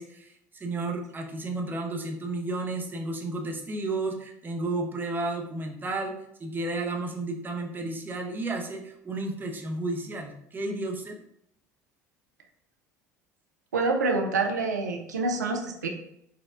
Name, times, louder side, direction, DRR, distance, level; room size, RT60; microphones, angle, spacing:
voice 1, 0.0-6.1 6.4-11.2, right 2 dB, 20° right, 2 dB, 0.7 m, -32 dB
voice 2, 13.7-15.9, right 3 dB, 80° right, 3 dB, 0.5 m, -27 dB
4.2 x 2.2 x 3.5 m, 0.75 s
figure-of-eight pair, 65°, 9 cm